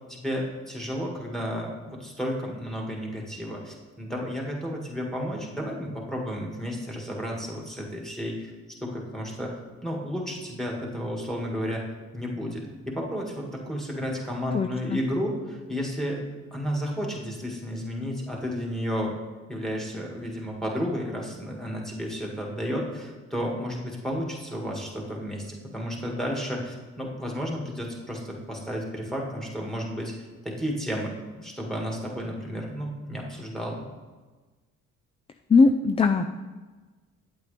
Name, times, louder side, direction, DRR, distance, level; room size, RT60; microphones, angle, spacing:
voice 1, 0.1-8.5 8.8-9.5 9.8-11.8 12.1-16.2 16.5-19.2 19.5-33.8, equal, ahead, -1 dB, 2.0 m, -32 dB
voice 2, 14.5-15.0 35.5-36.2, left 4 dB, 20° left, 7 dB, 0.4 m, -20 dB
8.8 x 8.2 x 3.4 m, 1.3 s
cardioid pair, 90°, 30 cm